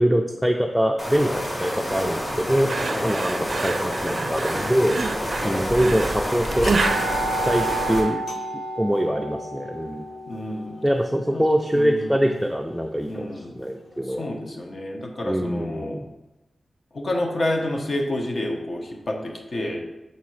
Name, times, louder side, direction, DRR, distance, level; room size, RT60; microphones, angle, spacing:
voice 1, 0.0-2.7 3.0-5.0 5.4-6.7 7.4-8.2 8.8-10.0 10.8-14.3 15.2-16.0, equal, ahead, 2 dB, 0.4 m, -23 dB
sound 1, 1.0-8.0, equal, 30° left, 2.2 m, -28 dB
sound 2, 2.7-8.2, right 4 dB, 60° right, 0.4 m, -29 dB
sound 3, 5.0-5.5 5.8-5.9 6.5-12.4, right 1 dB, 65° left, 0.7 m, -31 dB
voice 2, 10.3-10.8 11.3-11.5 11.7-12.2 13.1-13.6 14.1-16.0 16.9-19.8, left 1 dB, 50° left, 2 dB, 1.0 m, -29 dB
5.5 x 4.2 x 6.2 m, 1.0 s
wide cardioid pair, 100°, 0 cm